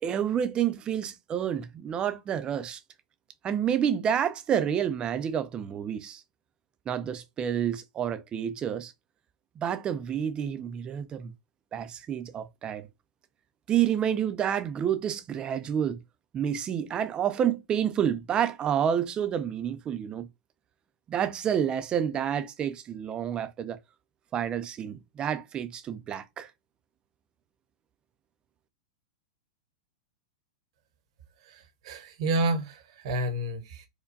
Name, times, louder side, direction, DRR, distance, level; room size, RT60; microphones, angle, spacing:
voice 1, 0.0-2.8 3.4-6.2 6.9-8.9 9.6-11.3 11.7-12.9 13.7-16.0 16.3-20.3 21.1-23.8 24.3-26.5, right 9 dB, 25° right, 0.5 m, -29 dB
voice 2, 31.5-33.9, right 2 dB, 60° right, 1.0 m, -30 dB
4.5 x 2.3 x 2.6 m
hypercardioid pair, 120°, 4 cm